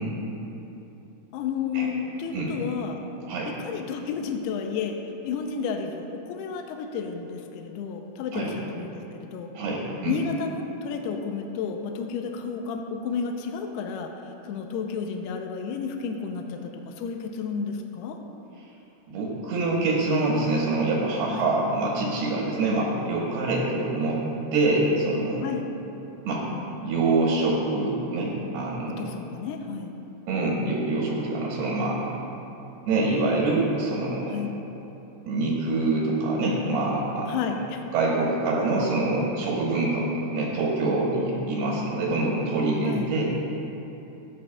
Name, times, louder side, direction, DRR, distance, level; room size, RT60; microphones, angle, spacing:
voice 1, 1.3-3.0 3.6-5.0 5.2-9.5 10.1-14.1 14.4-18.2 21.3-21.5 25.4-25.7 28.9-29.9 34.3-34.5 37.3-37.8 42.8-43.1, left 6 dB, 85° left, 3 dB, 2.4 m, -31 dB
voice 2, 9.5-10.1 19.1-24.2 24.5-25.4 26.3-26.5 26.8-29.1 30.3-32.1 32.8-34.4 35.3-37.3 37.9-43.3, right 2 dB, 70° right, -4 dB, 2.9 m, -25 dB
16.0 x 9.4 x 2.4 m, 2.9 s
omnidirectional pair, 5.2 m